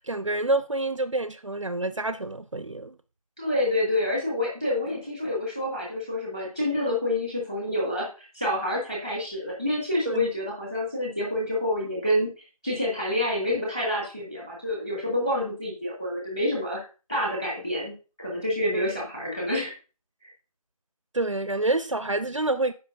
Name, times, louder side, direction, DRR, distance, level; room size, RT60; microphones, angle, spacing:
voice 1, 0.0-3.0 10.1-10.3 18.7-18.9 21.1-22.7, right 2 dB, 55° right, 0.5 m, -27 dB
voice 2, 3.4-12.3 12.6-19.7 20.2-20.3, left 1 dB, 10° left, 1.4 m, -28 dB
13.5 x 5.1 x 2.6 m
figure-of-eight pair, 165°, 19 cm